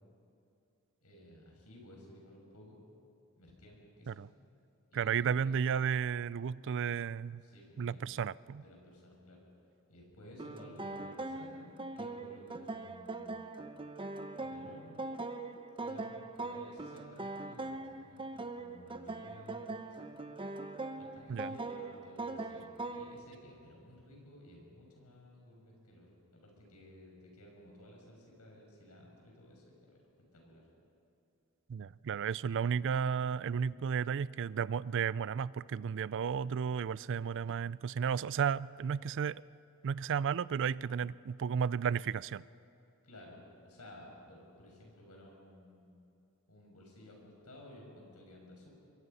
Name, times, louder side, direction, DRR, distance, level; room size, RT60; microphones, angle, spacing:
voice 1, 1.0-2.8 3.4-4.3 4.9-5.5 7.4-8.0 8.6-9.4 9.9-13.4 14.4-15.0 15.8-20.1 20.9-30.0 30.3-30.6 43.0-45.9 46.5-48.7, left 1 dB, 85° left, 0 dB, 6.7 m, -55 dB
voice 2, 4.9-7.4 7.8-8.6 21.3-21.5 31.7-39.4 39.8-42.4, right 7 dB, 55° right, 20 dB, 0.4 m, -33 dB
sound 1, 10.4-23.2, right 2 dB, 25° right, 0.8 m, -41 dB
25.5 x 22.5 x 5.6 m, 2.8 s
head